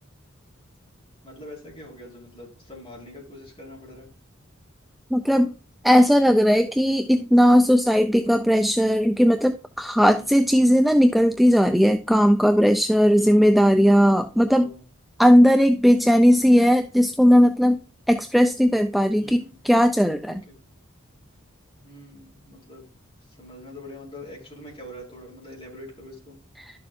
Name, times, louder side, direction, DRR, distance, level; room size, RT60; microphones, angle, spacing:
voice 1, 1.2-4.1 10.0-10.4 13.1-13.5 14.4-14.8 16.3-16.6 19.2-19.6 20.2-20.6 21.8-22.8 23.3-26.4, left 1 dB, 25° left, -3 dB, 4.8 m, -44 dB
voice 2, 5.1-5.5 5.8-14.7 15.2-17.8 18.1-20.4 26.6-26.7, equal, ahead, 6 dB, 0.5 m, -18 dB
11.5 x 7.0 x 2.5 m, 0.34 s
head